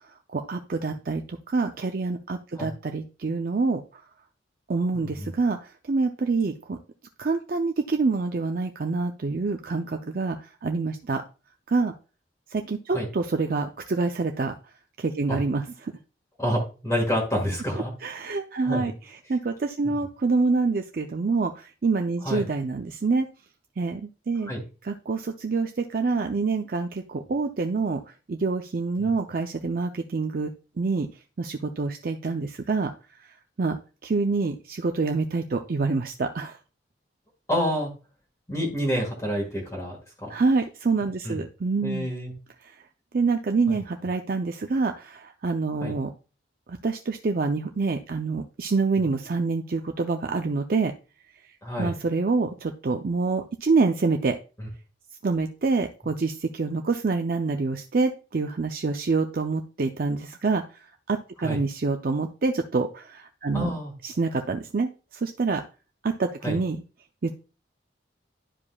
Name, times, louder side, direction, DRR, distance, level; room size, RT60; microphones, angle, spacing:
voice 1, 0.3-3.8 4.7-5.6 5.9-6.8 7.2-11.2 11.7-11.9 12.5-14.5 15.0-15.9 18.0-18.9 19.3-23.3 23.8-24.0 24.3-24.5 24.8-28.0 28.3-30.5 30.8-31.1 31.4-32.9 33.6-33.8 34.0-36.6 40.3-42.1 43.1-46.1 46.7-50.9 51.8-54.4 55.2-60.6 61.1-63.7 64.0-65.6 66.0-66.8 67.2-67.4, right 4 dB, 50° right, 5 dB, 0.5 m, -26 dB
voice 2, 4.9-5.3 12.9-13.1 15.3-15.4 16.4-17.9 18.6-18.9 19.8-19.9 22.2-22.5 24.4-24.6 29.0-29.1 37.5-37.9 38.5-40.3 41.2-41.4 41.8-42.3 43.7-43.8 45.8-45.9 51.6-51.9 54.6-54.7 61.4-61.6 63.5-63.9 66.4-66.6, equal, 15° left, -2 dB, 1.7 m, -28 dB
11.5 x 4.9 x 2.3 m, 0.33 s
head